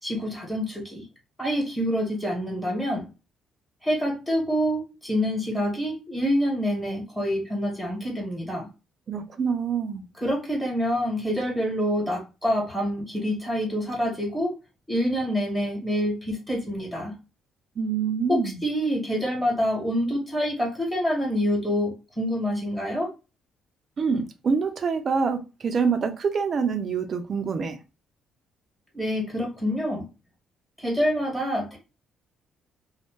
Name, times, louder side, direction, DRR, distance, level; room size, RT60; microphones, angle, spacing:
voice 1, 0.0-1.0 1.4-3.1 3.8-8.7 10.2-14.6 14.9-17.1 18.3-23.1 28.9-30.0 30.8-31.8, equal, 10° left, 1.3 m, -26 dB
voice 2, 9.1-10.0 17.8-18.6 24.0-27.8, right 5 dB, 40° right, 0.5 m, -26 dB
2.6 x 2.1 x 3.5 m
cardioid pair, 120°, 0 cm